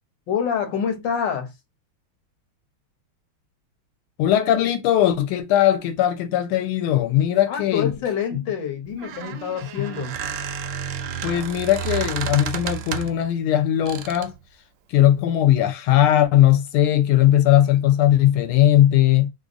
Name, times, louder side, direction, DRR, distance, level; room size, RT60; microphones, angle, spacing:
voice 1, 0.3-1.5 7.5-10.2, left 7 dB, 65° left, 1.3 m, -26 dB
voice 2, 4.2-7.9 8.3-8.4 9.8-9.9 11.2-14.3 14.9-19.3, left 12 dB, 85° left, 1.5 m, -19 dB
Squeak, 8.9-13.2 13.9-14.4, right 9 dB, 75° right, 1.0 m, -31 dB
3.4 x 2.6 x 2.5 m
omnidirectional pair, 2.4 m